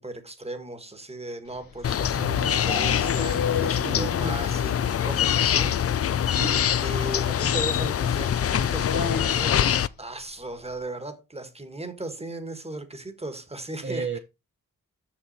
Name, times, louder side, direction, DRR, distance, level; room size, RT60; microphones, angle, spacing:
voice 1, 0.0-5.7 6.8-14.2, right 2 dB, 20° right, 1.5 m, -37 dB
sound 1, 1.5-4.6 4.9-5.0 5.3-5.4 5.6-5.7 7.0-7.1 8.8-9.6, left 6 dB, 80° left, 1.4 m, -32 dB
sound 2, 1.8-9.9, left 9 dB, 45° left, 0.4 m, -24 dB
voice 2, 3.8-4.4 6.3-6.7 13.8-14.2, right 5 dB, 35° right, 0.9 m, -33 dB
6.1 x 6.0 x 4.1 m
cardioid pair, 65°, 34 cm